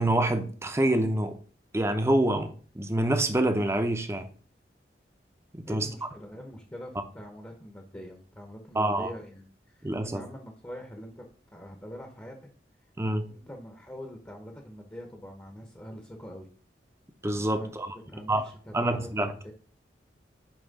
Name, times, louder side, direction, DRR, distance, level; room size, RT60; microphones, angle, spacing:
voice 1, 0.0-1.4 1.7-4.3 5.5-5.9 8.7-9.1 9.8-10.2 13.0-13.3 17.2-17.9 18.3-18.4 18.7-19.3, right 1 dB, 15° right, 0.6 m, -26 dB
voice 2, 5.7-12.5 13.3-16.5 17.5-19.5, equal, 15° left, 0.8 m, -44 dB
8.7 x 2.9 x 4.1 m
head